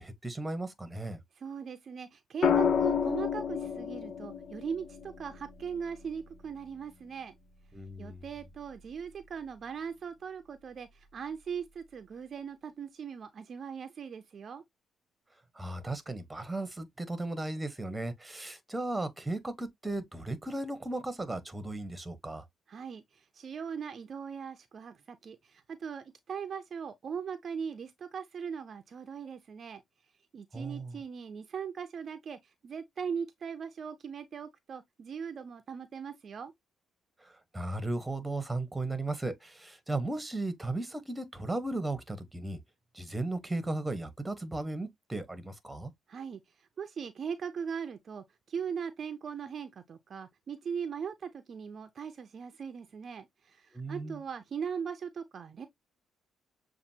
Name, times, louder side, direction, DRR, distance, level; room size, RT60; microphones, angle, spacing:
voice 1, 0.0-1.2 7.7-8.2 15.5-22.4 30.5-31.0 37.2-42.6 42.9-45.9 53.7-54.2, right 2 dB, 15° right, 1.1 m, -36 dB
voice 2, 1.4-7.4 8.0-14.6 22.7-29.8 30.3-36.5 46.1-46.4 46.8-55.7, right 6 dB, 50° right, 0.6 m, -40 dB
sound 1, 2.4-6.6 8.3-8.6, left 7 dB, 60° left, 0.5 m, -31 dB
7.0 x 2.6 x 2.7 m
cardioid pair, 90°, 0 cm